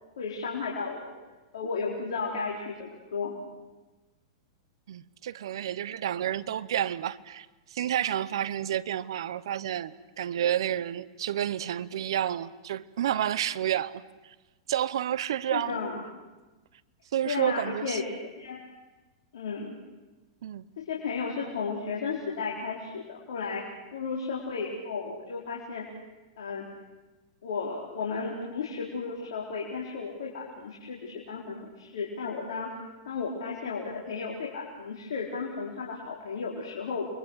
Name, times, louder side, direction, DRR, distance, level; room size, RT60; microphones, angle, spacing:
voice 1, 0.2-1.1 1.5-3.4 15.5-16.0 17.2-18.0 18.4-18.6 19.3-19.7 20.8-23.6 23.9-25.8 26.4-26.7 27.4-32.7 33.1-37.1, left 5 dB, 75° left, -4 dB, 4.4 m, -34 dB
voice 2, 4.9-14.3 14.7-15.9 17.1-18.0 20.4-20.7, right 11 dB, 70° right, 17 dB, 1.0 m, -30 dB
29.5 x 23.0 x 6.5 m, 1.1 s
hypercardioid pair, 120°, 3 cm